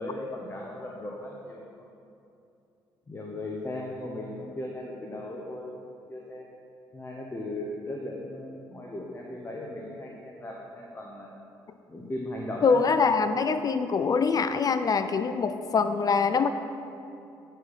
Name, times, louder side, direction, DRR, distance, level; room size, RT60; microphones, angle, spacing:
voice 1, 0.0-1.9 3.1-5.7 6.1-6.5 6.9-11.3 11.9-13.1, left 1 dB, 25° left, -2 dB, 1.0 m, -37 dB
voice 2, 12.6-16.5, left 5 dB, 40° left, 10 dB, 0.4 m, -24 dB
9.0 x 4.7 x 4.2 m, 2.7 s
supercardioid pair, 60°, 9 cm